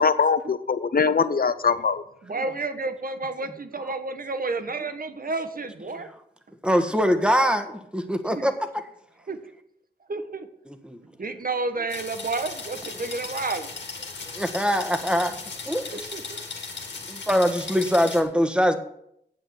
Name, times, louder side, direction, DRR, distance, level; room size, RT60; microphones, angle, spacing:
voice 1, 0.0-2.0, left 5 dB, 55° left, 13 dB, 0.8 m, -22 dB
voice 2, 2.3-6.1 8.3-8.5 9.3-9.4 10.1-10.5 11.2-13.7 16.1-16.4, right 3 dB, 55° right, 9 dB, 1.4 m, -30 dB
voice 3, 6.6-8.8 10.6-11.0 14.3-15.3 15.7-15.9 17.1-18.8, equal, 5° right, 7 dB, 1.7 m, -23 dB
sound 1, 11.9-18.2, left 4 dB, 85° left, 2.4 m, -37 dB
9.5 x 7.5 x 8.5 m, 0.75 s
cardioid pair, 45°, 18 cm